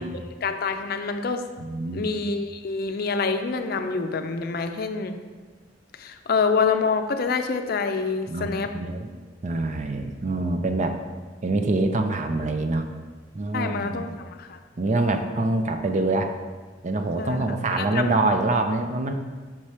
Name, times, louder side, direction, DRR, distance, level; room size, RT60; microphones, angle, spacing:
voice 1, 0.0-1.4 1.9-5.2 6.0-8.7 13.5-14.6 17.2-17.4 17.8-18.0, left 4 dB, 55° left, 7 dB, 0.5 m, -26 dB
voice 2, 1.6-2.1 8.3-9.1 9.4-11.0 11.4-12.9 13.3-14.2 14.8-16.3 16.8-19.1, right 2 dB, 40° right, 6 dB, 0.5 m, -25 dB
6.0 x 4.8 x 4.3 m, 1.4 s
head